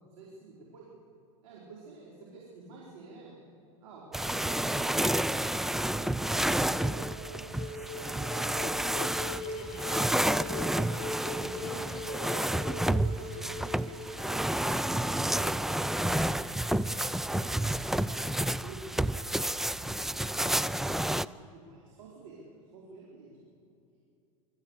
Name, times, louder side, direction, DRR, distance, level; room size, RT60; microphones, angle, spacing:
voice 1, 0.1-0.9 1.4-3.4 3.8-6.1 6.5-7.6 8.1-10.9 11.3-13.9 14.6-16.6 17.2-19.4 19.7-20.0 20.3-22.4 22.7-23.4, right 3 dB, 75° right, -4 dB, 4.7 m, -50 dB
sound 1, 4.1-21.3, right 1 dB, ahead, 0.4 m, -30 dB
sound 2, 5.9-15.0, left 2 dB, 55° left, 2.3 m, -41 dB
sound 3, 7.5-18.2, right 5 dB, 40° right, 2.6 m, -55 dB
23.5 x 14.0 x 8.3 m, 2.8 s
hypercardioid pair, 105°, 17 cm